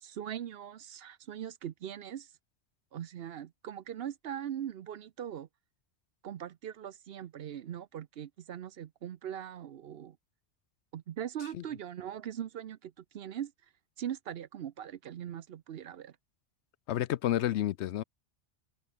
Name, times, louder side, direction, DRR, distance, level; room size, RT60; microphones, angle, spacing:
voice 1, 0.0-2.3 2.9-5.5 6.2-10.2 10.9-13.5 14.0-16.2, right 10 dB, 60° right, 0.8 m, -41 dB
voice 2, 16.9-18.0, left 12 dB, 70° left, 0.8 m, -30 dB
omnidirectional pair, 1.2 m